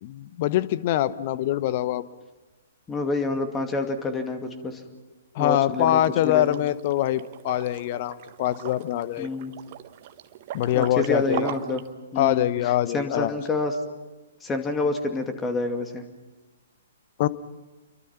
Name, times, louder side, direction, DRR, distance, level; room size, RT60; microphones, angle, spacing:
voice 1, 0.0-2.0 5.3-9.3 10.5-11.5 12.2-13.3 17.2-17.3, left 13 dB, 40° left, 16 dB, 1.0 m, -24 dB
voice 2, 2.9-4.8 5.4-6.6 9.2-9.5 10.7-11.8 12.1-12.5 12.9-13.7 14.4-16.1, left 3 dB, 15° left, 6 dB, 2.4 m, -28 dB
Liquid, 5.7-11.9, right 12 dB, 40° right, 1.4 m, -40 dB
30.0 x 23.5 x 5.9 m, 1.2 s
figure-of-eight pair, 120°, 0 cm